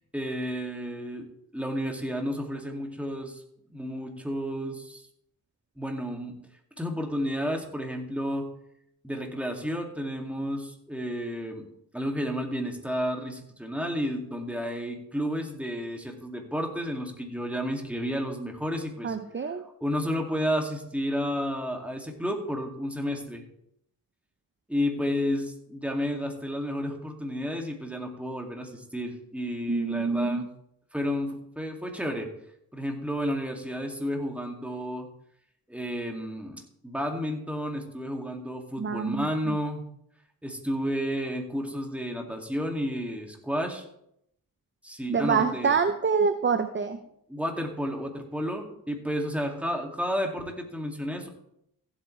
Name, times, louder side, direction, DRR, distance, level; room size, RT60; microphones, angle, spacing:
voice 1, 0.1-1.3 1.5-3.4 3.7-5.1 5.8-6.3 6.8-8.5 9.0-11.7 11.9-19.2 19.4-23.4 24.7-30.5 30.9-32.3 32.7-35.1 35.7-39.9 40.4-43.8 44.8-45.8 47.3-51.3, equal, 5° right, 2 dB, 2.4 m, -31 dB
voice 2, 19.0-19.6 29.7-30.4 38.8-39.6 45.1-47.0, right 5 dB, 30° right, 9 dB, 0.7 m, -26 dB
15.5 x 8.3 x 3.3 m, 0.74 s
cardioid pair, 65°, 38 cm